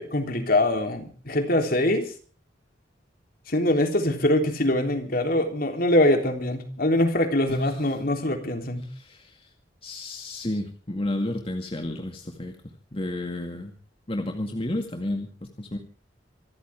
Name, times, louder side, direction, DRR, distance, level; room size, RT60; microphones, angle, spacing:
voice 1, 0.0-2.1 3.5-8.9, left 1 dB, 55° left, 5 dB, 3.5 m, -23 dB
voice 2, 7.5-7.9 8.8-9.5 9.8-13.7 14.1-15.8, left 1 dB, 30° left, 3 dB, 2.1 m, -32 dB
26.0 x 14.5 x 3.6 m, 0.40 s
head